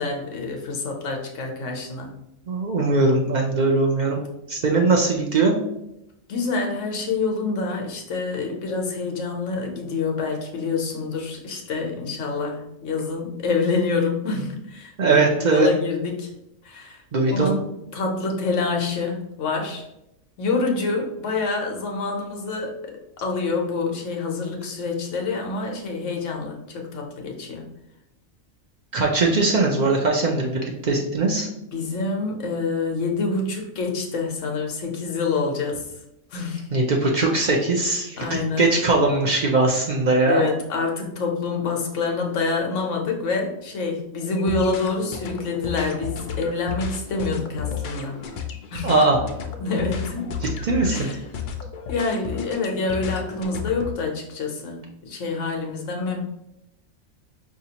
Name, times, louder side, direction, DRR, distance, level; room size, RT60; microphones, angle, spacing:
voice 1, 0.0-2.1 6.3-16.3 16.6-17.6 17.9-19.9 20.4-27.7 31.7-35.9 36.3-36.7 38.2-38.7 40.3-48.2 48.7-48.9 49.6-50.3 50.9-51.2 51.9-56.2, left 4 dB, 65° left, 1 dB, 1.1 m, -27 dB
voice 2, 2.5-4.2 4.5-5.5 15.0-15.7 17.1-17.5 28.9-31.5 36.7-40.4 48.8-49.2 50.4-51.1, right 3 dB, 80° right, -1 dB, 0.4 m, -20 dB
sound 1, 44.4-53.9, left 6 dB, 85° left, 0.4 m, -33 dB
5.0 x 2.7 x 2.8 m, 0.84 s
omnidirectional pair, 1.4 m